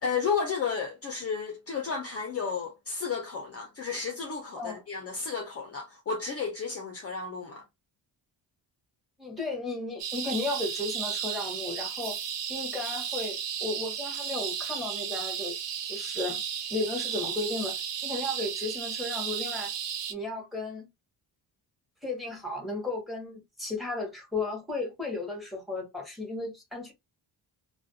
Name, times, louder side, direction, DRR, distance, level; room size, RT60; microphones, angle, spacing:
voice 1, 0.0-7.6, left 5 dB, 35° left, 0.5 m, -32 dB
voice 2, 9.2-12.2 12.5-15.5 15.9-16.4 16.7-17.7 18.0-19.7 20.1-20.9 22.0-26.9, left 2 dB, ahead, 1.0 m, -34 dB
sound 1, 10.0-20.1, right 8 dB, 90° right, 0.7 m, -34 dB
2.4 x 2.2 x 2.6 m
cardioid pair, 130°, 42 cm